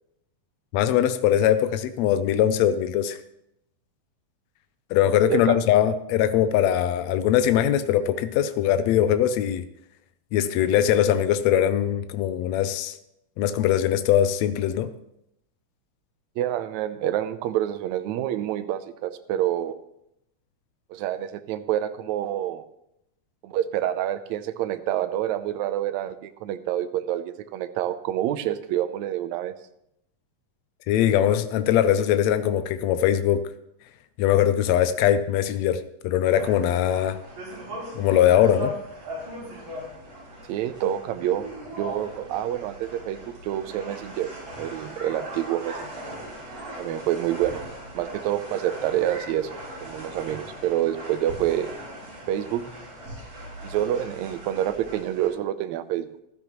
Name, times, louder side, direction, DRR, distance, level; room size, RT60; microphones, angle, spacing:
voice 1, 0.7-3.2 4.9-9.7 10.3-13.0 13.4-14.9 30.9-33.4 34.2-37.2 37.9-38.7, left 10 dB, 90° left, 11 dB, 1.5 m, -21 dB
voice 2, 5.3-5.6 16.4-19.8 20.9-22.6 23.4-29.5 40.5-41.5 41.8-44.3 44.6-45.9 46.8-47.6 47.9-49.5 49.8-51.7 52.3-52.6 53.6-56.1, right 12 dB, 80° right, 10 dB, 1.7 m, -27 dB
sound 1, 36.4-55.3, equal, 65° right, 7.2 m, -39 dB
15.0 x 12.0 x 3.0 m, 0.80 s
omnidirectional pair, 3.8 m